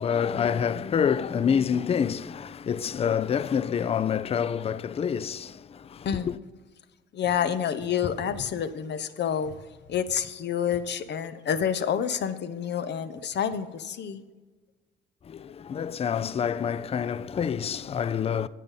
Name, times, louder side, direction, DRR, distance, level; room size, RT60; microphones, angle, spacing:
voice 1, 0.0-6.4 15.2-18.5, left 7 dB, 30° left, 0.4 m, -27 dB
voice 2, 7.1-9.5 9.9-14.2, left 8 dB, 60° left, 0.7 m, -28 dB
9.3 x 7.5 x 5.5 m
cardioid pair, 90°, 20 cm